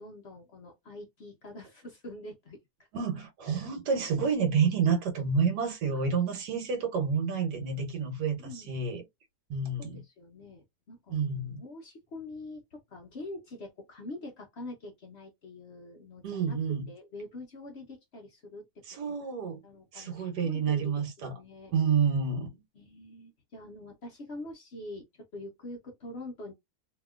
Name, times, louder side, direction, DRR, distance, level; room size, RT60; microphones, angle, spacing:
voice 1, 0.0-2.6 3.5-3.7 4.3-4.4 5.9-6.4 8.4-8.7 9.8-11.2 11.5-16.6 16.9-19.3 19.6-21.7 22.7-26.5, left 2 dB, 55° left, 0.8 m, -45 dB
voice 2, 2.9-9.0 9.5-10.0 11.1-11.6 16.2-16.9 18.9-19.6 19.9-21.3 21.7-22.6, right 6 dB, 85° right, 1.5 m, -29 dB
2.9 x 2.8 x 2.3 m
omnidirectional pair, 1.7 m